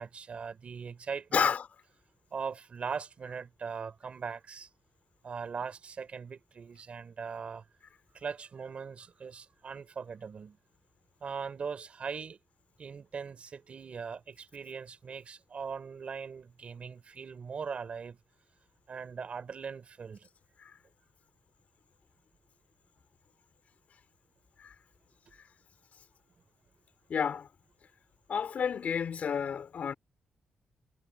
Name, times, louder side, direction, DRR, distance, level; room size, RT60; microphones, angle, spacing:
voice 1, 0.0-1.5 2.3-4.7 5.2-7.7 8.1-10.6 11.2-12.4 12.8-18.2 18.9-20.3, right 6 dB, 45° right, 4.4 m, -40 dB
voice 2, 1.3-1.6 20.6-20.7 24.6-24.7 27.1-27.5 28.3-29.9, left 7 dB, 55° left, 5.1 m, -30 dB
wide cardioid pair, 135°, 3 cm